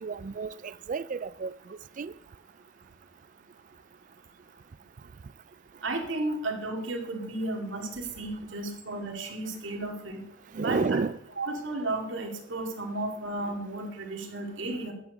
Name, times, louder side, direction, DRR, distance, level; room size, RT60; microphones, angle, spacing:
voice 1, 0.0-1.5 2.0-2.1 10.5-11.2, right 4 dB, 40° right, 0.4 m, -31 dB
voice 2, 5.8-10.2 10.6-11.0 11.4-14.9, right 2 dB, 70° right, 2.4 m, -33 dB
12.0 x 8.8 x 5.1 m
head